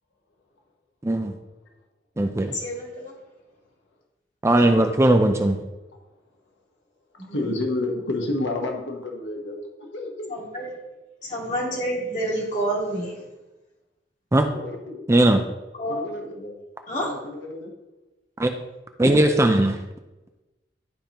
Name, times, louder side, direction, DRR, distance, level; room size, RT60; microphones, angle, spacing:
voice 1, 1.0-1.3 2.2-2.5 4.4-5.6 14.3-14.5 15.1-15.4 18.4-18.5 19.0-19.8, right 1 dB, 15° right, 6 dB, 0.4 m, -18 dB
voice 2, 2.5-3.1 7.2-7.4 10.3-10.7 11.2-13.1 15.8-16.0 16.9-17.1, right 1 dB, 40° left, -4 dB, 2.5 m, -28 dB
voice 3, 7.1-10.4 14.5-15.1 15.4-15.5 15.9-16.6 17.0-17.7, left 2 dB, 85° left, 1 dB, 1.2 m, -30 dB
11.5 x 5.1 x 2.9 m, 1.1 s
head